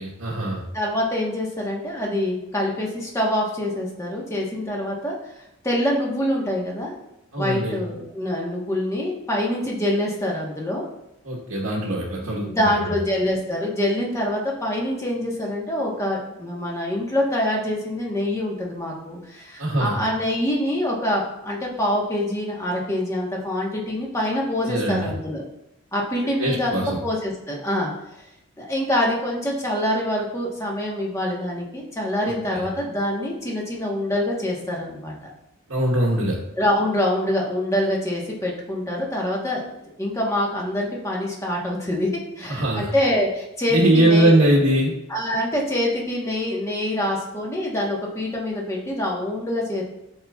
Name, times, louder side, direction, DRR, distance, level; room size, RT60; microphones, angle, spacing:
voice 1, 0.0-0.6 7.3-7.8 11.2-12.9 19.6-20.0 24.6-25.1 26.4-27.0 32.2-32.6 35.7-36.4 42.5-42.9 43.7-44.9, right 1 dB, 70° right, -5 dB, 1.2 m, -21 dB
voice 2, 0.7-5.2 5.6-7.0 7.4-10.8 12.1-25.4 25.9-27.9 28.6-35.1 36.6-39.6 40.0-44.4 45.1-49.8, left 1 dB, 15° left, -2 dB, 1.2 m, -25 dB
11.0 x 4.3 x 2.3 m, 0.87 s
head